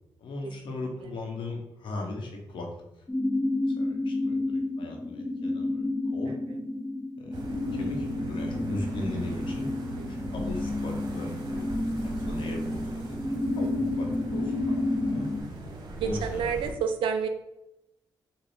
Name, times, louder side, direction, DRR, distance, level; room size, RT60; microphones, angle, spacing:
voice 1, 0.2-2.7 3.8-4.4 4.8-6.3 7.2-7.4 7.7-11.7 12.0-14.8 15.1-15.3 16.0-16.7, left 2 dB, 75° left, 1 dB, 0.8 m, -38 dB
sound 1, 3.1-15.4, left 2 dB, 25° left, 0.6 m, -30 dB
sound 2, 7.3-16.7, right 2 dB, 60° right, 0.8 m, -40 dB
voice 2, 10.0-10.3 13.6-13.7 16.0-17.3, right 6 dB, 80° right, 7 dB, 0.4 m, -30 dB
4.0 x 2.1 x 3.4 m, 0.90 s
cardioid pair, 65°, 9 cm